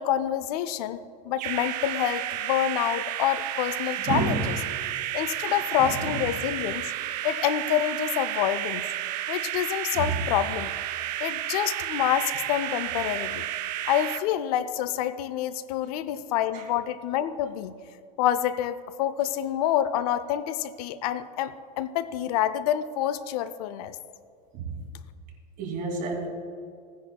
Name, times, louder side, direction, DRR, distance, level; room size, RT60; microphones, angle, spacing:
voice 1, 0.0-4.4 5.1-6.9 7.2-8.8 9.3-10.7 11.2-13.5 13.9-17.7 18.2-24.0, left 11 dB, 70° left, 14 dB, 0.6 m, -27 dB
sound 1, 1.4-14.2, right 14 dB, 90° right, 0.6 m, -32 dB
voice 2, 4.1-4.4 5.5-6.2 9.9-10.0 16.5-16.6 24.5-24.7 25.6-26.3, right 5 dB, 45° right, 0 dB, 2.6 m, -30 dB
16.0 x 10.0 x 2.3 m, 2.3 s
supercardioid pair, 145°, 21 cm